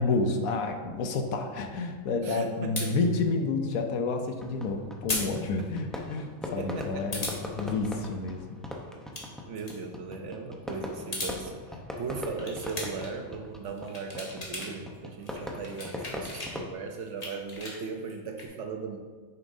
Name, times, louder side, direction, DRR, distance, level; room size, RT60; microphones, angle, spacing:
voice 1, 0.0-8.6, left 3 dB, 80° left, 5 dB, 1.2 m, -30 dB
voice 2, 2.2-3.0 5.6-5.7 6.4-7.3 9.4-19.0, right 5 dB, 65° right, 4 dB, 0.9 m, -38 dB
sound 1, 2.8-2.9 5.1-5.3 5.6-5.7 7.1-7.4 8.9-9.3 9.6-9.8 10.9-11.4 12.4-13.1 13.7-14.7 15.0-16.5 16.9-18.5, left 2 dB, 30° left, 1.2 m, -36 dB
Fireworks, 4.4-16.7, left 1 dB, ahead, 0.4 m, -40 dB
8.7 x 7.0 x 2.7 m, 1.5 s
omnidirectional pair, 1.5 m